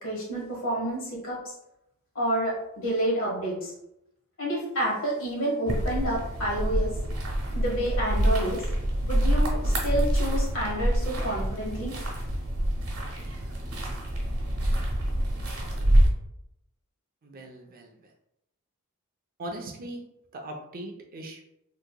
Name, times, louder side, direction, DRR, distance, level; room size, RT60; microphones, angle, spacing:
voice 1, 0.0-1.5 2.1-3.7 4.4-6.9 7.5-8.6 9.0-12.0, right 1 dB, 65° left, -3 dB, 1.4 m, -29 dB
sound 1, 5.7-16.1, right 1 dB, 80° right, 1.2 m, -26 dB
voice 2, 17.2-17.9 19.4-20.0 20.3-21.4, right 1 dB, 40° right, 2 dB, 0.5 m, -39 dB
3.7 x 2.8 x 2.2 m, 0.81 s
head